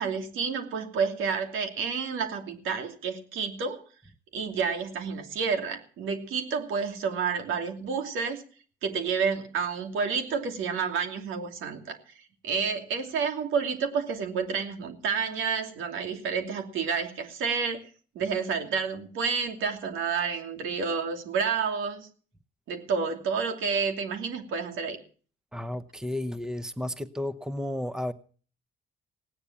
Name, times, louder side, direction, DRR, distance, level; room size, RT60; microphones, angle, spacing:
voice 1, 0.0-3.8 4.3-8.4 8.8-17.8 18.1-22.1 22.7-25.0, right 6 dB, 85° right, 5 dB, 2.8 m, -30 dB
voice 2, 25.5-28.1, left 1 dB, 5° right, 12 dB, 1.0 m, -33 dB
17.5 x 9.7 x 7.2 m, 0.42 s
cardioid pair, 90°, 20 cm